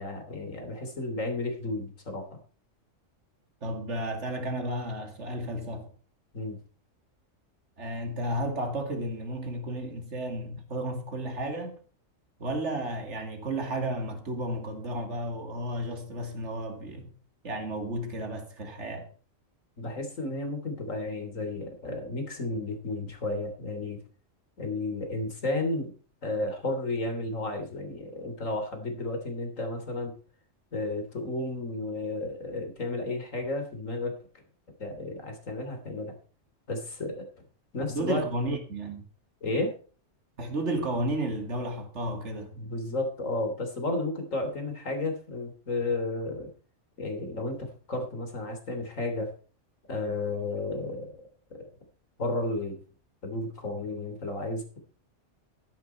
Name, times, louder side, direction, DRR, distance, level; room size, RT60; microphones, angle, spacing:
voice 1, 0.0-2.4 6.3-6.6 19.8-24.0 24.6-25.9 26.2-30.1 30.7-34.1 34.8-36.1 36.7-37.3 37.7-38.2 39.4-39.7 42.5-46.5 47.0-49.3 49.9-51.1 52.2-52.8 53.2-54.8, left 2 dB, 90° left, 3.5 m, -32 dB
voice 2, 3.6-5.9 7.8-11.8 12.4-17.1 17.4-19.1 37.9-39.1 40.4-42.6, right 1 dB, 65° right, 2.8 m, -33 dB
14.0 x 10.5 x 4.4 m
omnidirectional pair, 1.3 m